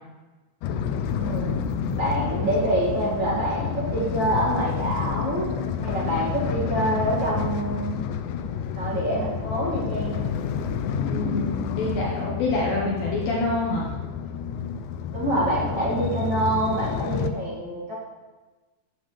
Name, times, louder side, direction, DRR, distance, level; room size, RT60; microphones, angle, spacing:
sound 1, 0.6-17.3, left 7 dB, 85° left, 1.8 m, -29 dB
voice 1, 1.2-1.6 2.0-5.5 5.8-8.0 8.7-10.3 15.1-17.9, right 1 dB, 35° right, -7 dB, 2.5 m, -26 dB
voice 2, 11.1-13.9, left 2 dB, 70° left, -4 dB, 2.9 m, -26 dB
15.0 x 7.2 x 3.3 m, 1.2 s
omnidirectional pair, 4.4 m